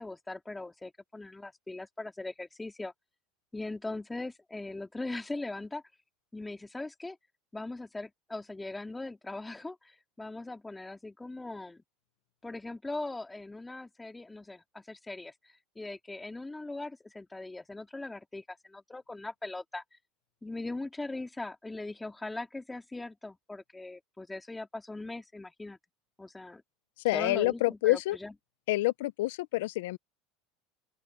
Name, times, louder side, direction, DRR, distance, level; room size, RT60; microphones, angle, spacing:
voice 1, 0.0-2.9 3.5-5.8 6.3-7.2 7.5-11.8 12.4-19.8 20.4-25.8 26.2-26.6 27.1-28.3, left 2 dB, 10° left, 2.2 m, -40 dB
voice 2, 27.0-28.2 28.7-30.0, left 19 dB, 80° left, 0.5 m, -27 dB
open air
supercardioid pair, 140°, 0 cm